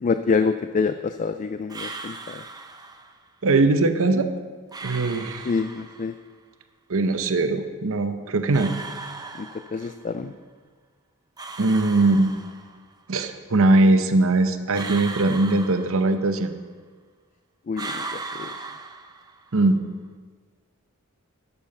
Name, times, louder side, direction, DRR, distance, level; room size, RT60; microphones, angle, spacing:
voice 1, 0.0-2.4 5.5-6.1 9.4-10.3 17.7-18.5, left 5 dB, 35° left, 10 dB, 0.3 m, -26 dB
sound 1, 1.7-3.2 4.7-6.2 8.5-10.1 11.4-12.9 14.7-16.5 17.7-19.6, right 3 dB, 20° right, 0.6 m, -37 dB
voice 2, 3.4-4.3 4.8-5.5 6.9-8.7 11.6-12.3 13.1-16.5 19.5-19.8, right 2 dB, 65° right, 8 dB, 0.8 m, -20 dB
12.5 x 7.0 x 5.4 m, 1.5 s
head